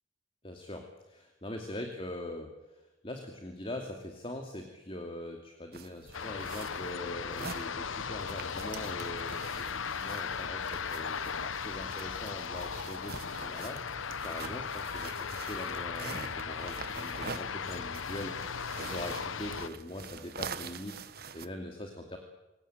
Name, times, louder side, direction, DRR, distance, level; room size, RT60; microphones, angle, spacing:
voice 1, 0.4-21.0 21.3-22.2, left 1 dB, 25° left, 3 dB, 2.6 m, -42 dB
sound 1, 5.7-21.5, right 5 dB, 50° right, 1.3 m, -45 dB
sound 2, 6.1-19.7, left 6 dB, 80° left, 0.9 m, -37 dB
26.5 x 17.0 x 9.0 m, 1.0 s
head